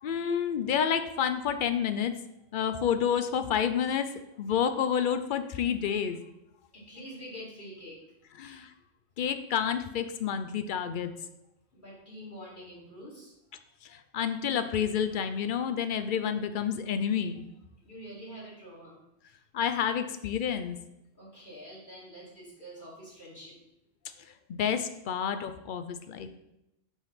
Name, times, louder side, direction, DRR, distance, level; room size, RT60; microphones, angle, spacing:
voice 1, 0.0-2.1 2.5-4.1 4.4-6.2 8.4-8.7 9.2-11.1 13.9-17.4 19.5-20.8 24.5-26.3, left 8 dB, 60° left, 9 dB, 0.6 m, -29 dB
voice 2, 6.7-8.0 8.4-8.6 11.7-13.3 17.8-19.0 19.2-19.4 21.1-23.6, equal, 40° left, -7 dB, 2.5 m, -46 dB
6.1 x 3.4 x 5.7 m, 0.86 s
omnidirectional pair, 1.3 m